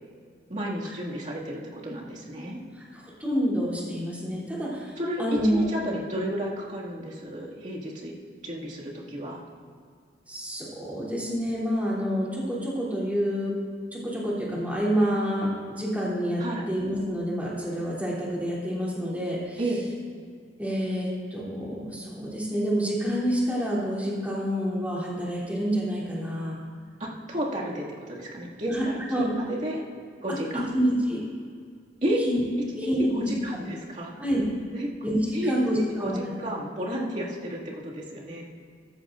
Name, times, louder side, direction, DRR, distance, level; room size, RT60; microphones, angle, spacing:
voice 1, 0.5-2.6 5.0-8.1 8.4-9.4 16.4-16.7 19.6-19.9 27.0-29.8 30.2-30.7 32.0-32.2 32.8-34.1 34.7-34.9 35.3-38.5, equal, 45° right, -4 dB, 2.2 m, -32 dB
voice 2, 2.9-5.7 10.3-13.5 13.9-16.4 16.7-19.6 20.6-26.6 28.7-29.2 30.5-31.2 32.2-32.4 32.8-33.3 34.2-34.4 35.0-36.2, equal, 10° right, -7 dB, 3.2 m, -28 dB
15.0 x 14.0 x 2.6 m, 2.1 s
head